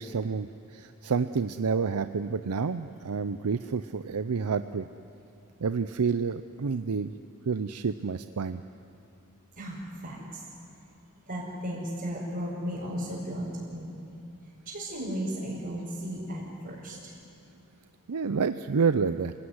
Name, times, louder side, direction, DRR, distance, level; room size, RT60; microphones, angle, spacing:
voice 1, 0.0-4.9 5.6-7.1 7.5-8.6 18.1-19.3, right 5 dB, 85° right, 10 dB, 0.6 m, -29 dB
voice 2, 9.6-10.4 11.3-13.9 14.7-17.1, equal, 45° right, -8 dB, 5.6 m, -35 dB
28.0 x 17.5 x 9.7 m, 2.7 s
head